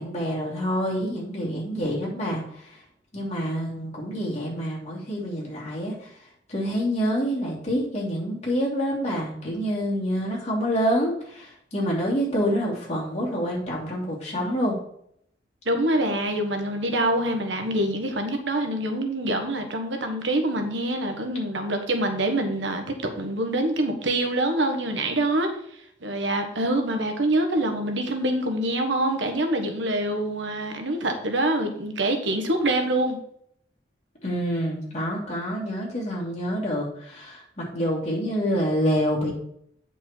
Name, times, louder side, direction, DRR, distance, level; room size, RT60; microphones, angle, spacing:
voice 1, 0.0-2.8 3.1-6.1 6.5-14.8 34.2-39.3, equal, 35° left, -4 dB, 2.9 m, -27 dB
voice 2, 15.6-25.5 26.0-33.2, right 1 dB, 75° right, 5 dB, 1.3 m, -25 dB
8.9 x 5.3 x 4.4 m, 0.71 s
head